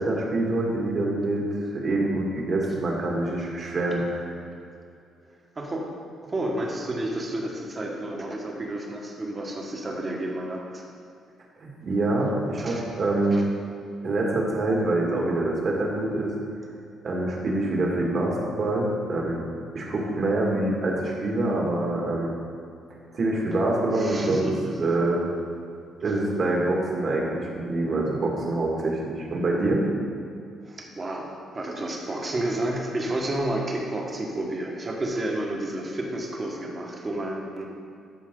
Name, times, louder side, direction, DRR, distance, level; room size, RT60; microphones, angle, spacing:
voice 1, 0.0-1.4 1.7-4.3 11.6-13.4 14.0-16.3 17.0-19.4 19.7-22.3 23.1-25.2 26.0-29.9, right 2 dB, 50° right, -2 dB, 2.0 m, -25 dB
voice 2, 6.2-10.8 12.6-12.8 13.3-13.4 23.9-24.7 26.0-26.1 30.7-37.6, right 1 dB, 30° right, 0 dB, 1.6 m, -31 dB
13.0 x 5.3 x 3.9 m, 2.4 s
cardioid pair, 90°, 0 cm